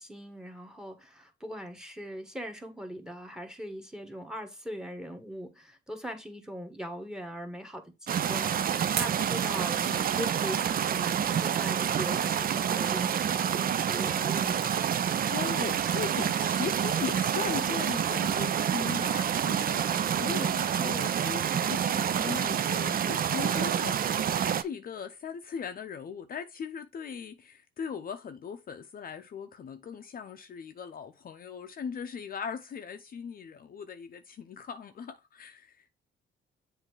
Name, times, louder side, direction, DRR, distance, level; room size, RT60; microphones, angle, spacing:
voice 1, 0.0-8.6 9.0-14.6, equal, 5° right, 1.3 m, -40 dB
sound 1, 8.1-24.6, right 8 dB, 45° right, 0.5 m, -28 dB
sound 2, 8.9-11.4 12.1-12.6 13.0-14.7 15.0-15.2 15.6-15.7, right 9 dB, 80° right, 0.8 m, -42 dB
voice 2, 15.0-35.9, left 6 dB, 45° left, 0.6 m, -39 dB
7.5 x 2.7 x 4.6 m
cardioid pair, 90°, 20 cm